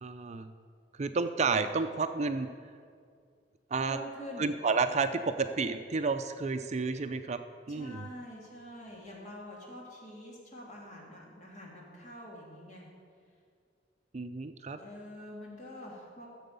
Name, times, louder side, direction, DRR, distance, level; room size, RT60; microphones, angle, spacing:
voice 1, 0.0-0.5 1.0-2.5 3.7-4.0 4.4-7.4 7.7-8.1 14.1-14.8, right 4 dB, 40° right, 9 dB, 0.5 m, -31 dB
voice 2, 3.9-4.5 7.7-12.8 14.8-16.3, equal, 45° left, -3 dB, 2.8 m, -46 dB
13.0 x 7.6 x 6.8 m, 2.2 s
head